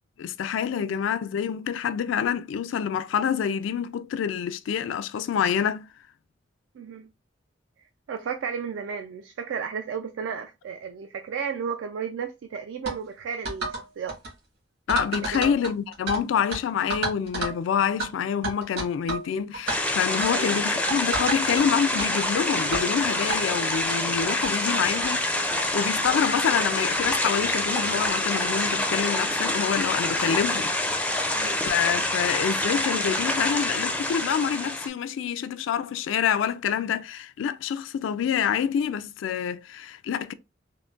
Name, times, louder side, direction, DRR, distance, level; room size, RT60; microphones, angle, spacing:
voice 1, 0.2-5.9 14.9-30.8 31.2-40.3, left 7 dB, 85° left, 0.3 m, -27 dB
voice 2, 6.7-7.1 8.1-13.7 14.0-14.2 15.3-15.5 20.3-20.5 31.3-31.6, right 6 dB, 80° right, 0.3 m, -33 dB
sound 1, 12.9-13.0 13.5-13.8 14.1-14.3 14.9-16.2 16.5-16.6 16.9-17.6 18.0-18.1 18.4-19.3 19.5-19.8 20.2-20.4 20.9-21.6 22.0-22.1 22.7-22.9 23.3-23.4 24.1-24.2 24.4-24.5 25.0-25.2 26.0-26.1 27.0-27.2, right 3 dB, 60° right, 1.6 m, -30 dB
sound 2, 19.7-34.9, left 1 dB, 5° left, 0.4 m, -26 dB
3.7 x 2.1 x 2.3 m
head